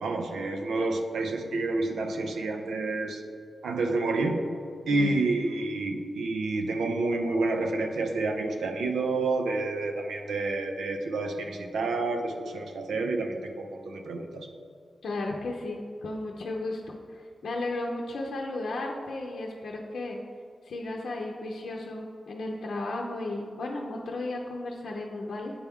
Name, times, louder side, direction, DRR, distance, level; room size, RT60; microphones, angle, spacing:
voice 1, 0.0-3.2 3.6-4.4 4.9-14.5, right 3 dB, 90° right, 4 dB, 0.6 m, -29 dB
voice 2, 4.9-5.3 15.0-20.2 20.6-25.5, left 2 dB, 75° left, -1 dB, 0.6 m, -34 dB
8.5 x 4.5 x 3.6 m, 2.2 s
cardioid pair, 55°, 0 cm